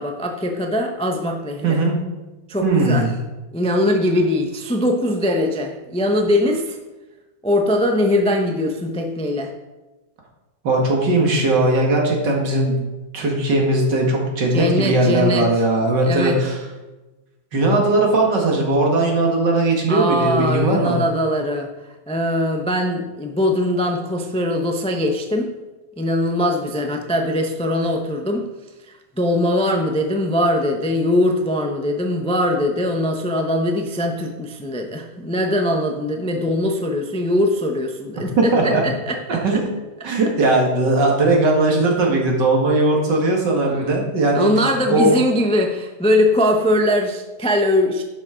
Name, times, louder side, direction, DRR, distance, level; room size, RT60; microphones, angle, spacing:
voice 1, 0.0-1.8 2.5-3.1 3.5-6.8 7.4-9.5 14.5-15.5 16.0-16.4 19.9-21.7 22.1-25.5 26.0-28.4 28.9-39.6 44.3-48.0, left 1 dB, 10° left, 3 dB, 0.3 m, -21 dB
voice 2, 1.6-2.0 2.6-3.1 10.6-12.8 13.1-16.5 17.5-21.0 38.2-38.8 39.3-39.6 40.0-44.5 44.9-45.2, right 2 dB, 65° right, -1 dB, 2.5 m, -18 dB
11.5 x 6.3 x 5.1 m, 1.1 s
omnidirectional pair, 2.0 m